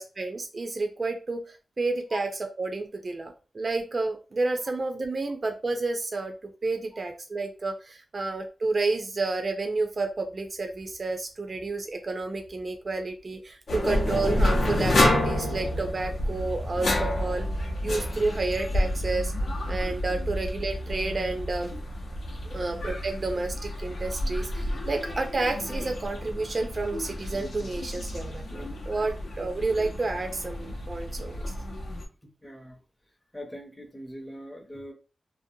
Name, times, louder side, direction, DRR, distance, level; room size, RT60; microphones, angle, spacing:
voice 1, 0.0-17.5 17.8-19.3 19.7-21.7 22.5-31.5, right 3 dB, 40° right, 5 dB, 0.3 m, -30 dB
sound 1, 13.7-32.0, left 1 dB, 75° left, 0.6 m, -29 dB
voice 2, 32.4-32.8 33.3-34.9, equal, 10° left, 0 dB, 0.6 m, -41 dB
2.5 x 2.0 x 2.6 m, 0.33 s
wide cardioid pair, 105°, 0 cm